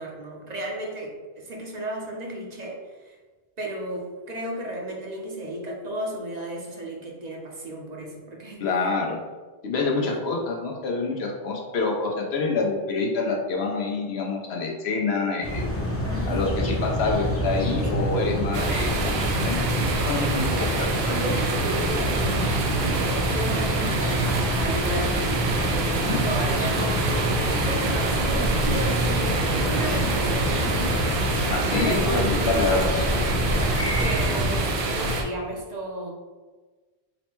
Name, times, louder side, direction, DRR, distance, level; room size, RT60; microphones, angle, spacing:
voice 1, 0.0-3.2 3.6-8.7 9.9-10.1 16.0-16.6 17.8-18.1 21.0-32.8 33.2-33.5 34.0-36.1, right 1 dB, 50° right, -1 dB, 0.7 m, -33 dB
voice 2, 8.6-9.2 9.6-15.7 16.3-20.9 26.1-26.2 31.5-33.0, left 3 dB, 90° left, 0 dB, 1.0 m, -27 dB
sound 1, 15.4-34.6, equal, 20° left, 0.5 m, -26 dB
sound 2, 18.5-35.2, right 3 dB, 90° right, 0.9 m, -27 dB
4.0 x 2.1 x 4.4 m, 1.3 s
omnidirectional pair, 1.0 m